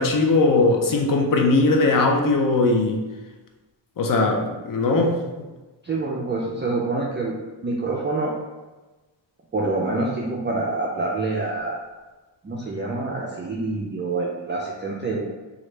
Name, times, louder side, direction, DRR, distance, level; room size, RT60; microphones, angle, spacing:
voice 1, 0.0-3.0 4.0-5.2, left 3 dB, 45° left, 3 dB, 0.5 m, -19 dB
voice 2, 5.8-7.4 7.6-8.3 9.5-11.8 12.4-15.3, right 3 dB, 25° right, -3 dB, 0.3 m, -26 dB
3.1 x 2.4 x 3.1 m, 1.2 s
wide cardioid pair, 115°, 46 cm